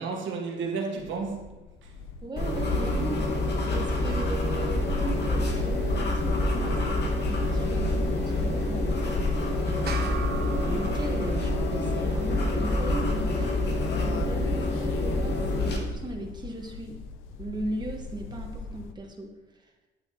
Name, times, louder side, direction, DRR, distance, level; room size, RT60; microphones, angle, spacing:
voice 1, 0.0-2.0 9.4-9.6, right 4 dB, 70° right, 1.5 m, -33 dB
sound 1, 1.0-18.9, left 4 dB, 85° left, 0.6 m, -40 dB
voice 2, 2.2-3.4 3.7-9.2 9.6-13.6 14.0-17.0 17.4-19.7, right 2 dB, 20° right, 1.2 m, -38 dB
sound 2, 2.4-15.8, left 2 dB, 60° left, 1.6 m, -27 dB
sound 3, 9.9-14.6, right 6 dB, 55° right, 1.1 m, -41 dB
8.9 x 8.0 x 2.9 m
cardioid pair, 90°, 20 cm